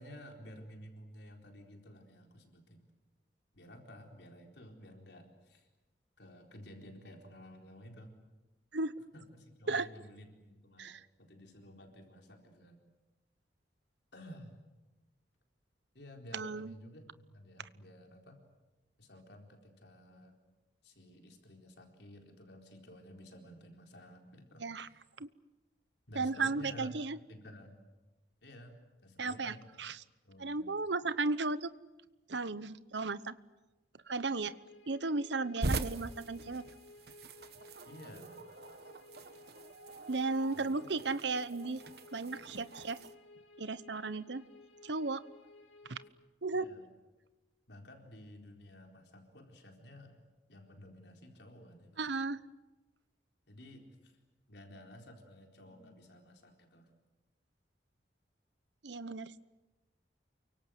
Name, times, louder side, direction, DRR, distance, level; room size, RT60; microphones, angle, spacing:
voice 1, 0.0-2.8 3.5-5.7 6.2-8.1 9.1-12.8 14.1-14.6 15.9-18.4 19.0-20.4 20.8-25.0 26.1-27.0 27.3-27.8 28.4-28.8 29.0-29.6 30.2-30.8 35.6-35.7 37.9-38.5 38.8-38.9 40.5-41.0 46.5-46.8 47.7-50.2 50.5-52.1 53.5-54.2 54.5-56.9, equal, 70° left, 3 dB, 4.2 m, -53 dB
voice 2, 16.3-16.7 24.6-24.9 25.2-25.3 26.2-27.2 29.2-30.0 30.4-31.7 32.3-33.3 34.1-34.5 34.9-36.6 40.1-41.8 42.1-43.0 43.6-44.4 44.8-45.2 45.9-46.0 46.4-46.7 52.0-52.4 58.8-59.3, right 3 dB, 75° right, 15 dB, 1.0 m, -35 dB
sound 1, 34.4-46.1, left 2 dB, 90° left, 3.1 m, -57 dB
sound 2, 35.6-43.1, right 2 dB, 55° right, 1.3 m, -42 dB
28.5 x 24.5 x 7.7 m, 1.1 s
head